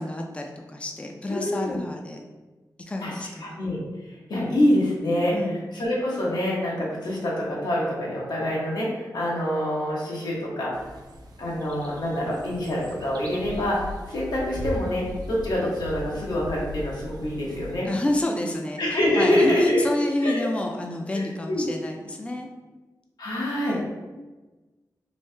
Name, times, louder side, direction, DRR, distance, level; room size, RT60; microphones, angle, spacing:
voice 1, 0.0-2.2 2.9-3.6 5.3-5.6 17.8-18.8 19.2-22.5 23.7-23.8, left 1 dB, 15° left, 2 dB, 0.4 m, -29 dB
voice 2, 1.3-1.8 3.0-3.8 4.3-5.3 5.7-10.7 11.4-17.9 18.8-19.8 20.2-20.5 21.1-21.6 23.2-23.8, left 1 dB, 90° left, -4 dB, 1.0 m, -26 dB
sound 1, 10.7-17.8, left 1 dB, 70° right, 0.5 m, -38 dB
3.1 x 2.7 x 3.2 m, 1.2 s
wide cardioid pair, 80°, 7 cm